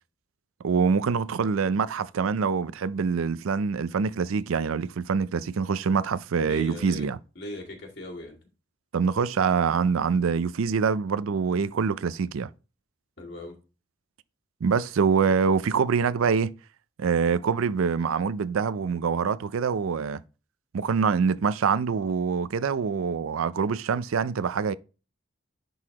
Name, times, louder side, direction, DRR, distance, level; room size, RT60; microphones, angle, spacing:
voice 1, 0.6-7.2 8.9-12.5 14.6-16.5 17.0-20.2 20.7-24.7, right 5 dB, 80° right, 0.4 m, -25 dB
voice 2, 6.5-7.1 7.4-8.4 13.2-13.5, left 1 dB, 50° left, 2.1 m, -38 dB
10.5 x 3.9 x 2.9 m
head